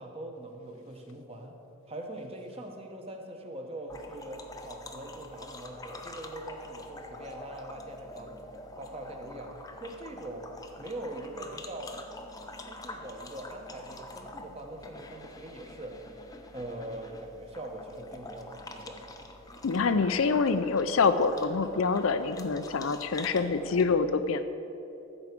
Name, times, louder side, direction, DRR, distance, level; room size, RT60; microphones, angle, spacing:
voice 1, 0.0-1.6 1.9-8.3 8.8-9.5 9.8-10.4 10.8-11.9 12.7-15.9 16.5-19.0, right 1 dB, 25° right, 3 dB, 1.0 m, -42 dB
sound 1, 3.9-23.8, left 2 dB, 15° left, 0.6 m, -46 dB
voice 2, 19.6-24.5, left 4 dB, 65° left, 11 dB, 0.5 m, -26 dB
13.5 x 4.8 x 8.2 m, 2.8 s
head